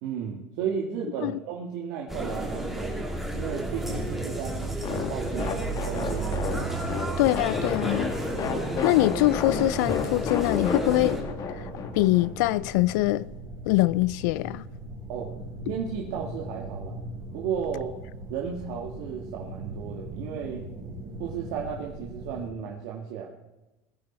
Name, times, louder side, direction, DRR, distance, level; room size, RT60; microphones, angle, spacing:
voice 1, 0.0-6.4 15.1-15.3 15.7-17.0 17.3-17.9 18.3-20.7 21.2-23.3, right 7 dB, 70° right, 1.8 m, -34 dB
sound 1, 2.1-11.2, right 2 dB, 5° right, 2.6 m, -32 dB
sound 2, 3.6-22.5, right 1 dB, 45° right, 5.0 m, -40 dB
sound 3, 4.8-12.3, left 6 dB, 40° left, 1.6 m, -32 dB
voice 2, 7.2-8.1 8.8-11.2 11.5-11.6 11.9-13.3 13.7-14.7, left 18 dB, 75° left, 0.4 m, -23 dB
21.0 x 10.0 x 4.4 m
supercardioid pair, 115°, 10 cm